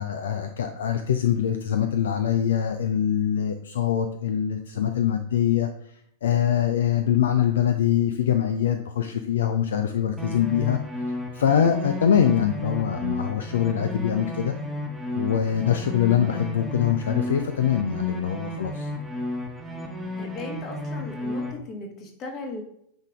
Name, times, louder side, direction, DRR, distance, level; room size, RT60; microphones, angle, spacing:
voice 1, 0.0-5.7 6.2-10.8 11.3-14.5 15.1-18.9, left 9 dB, 65° left, 8 dB, 0.4 m, -23 dB
sound 1, 10.2-21.5, left 1 dB, ahead, 1.2 m, -33 dB
voice 2, 20.2-22.6, left 2 dB, 35° left, 2 dB, 1.6 m, -37 dB
9.0 x 3.5 x 3.5 m, 0.71 s
figure-of-eight pair, 90°, 0 cm